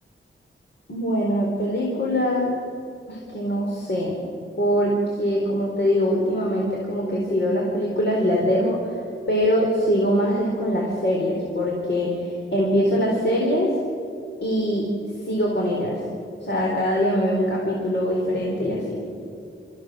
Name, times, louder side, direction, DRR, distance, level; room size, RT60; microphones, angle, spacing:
voice 1, 0.9-2.5 3.1-4.2 4.6-9.0 9.3-13.8 14.4-14.9 15.3-16.0 16.4-19.0, equal, 55° left, -2 dB, 4.1 m, -23 dB
28.0 x 15.5 x 6.4 m, 2.5 s
wide cardioid pair, 105°, 21 cm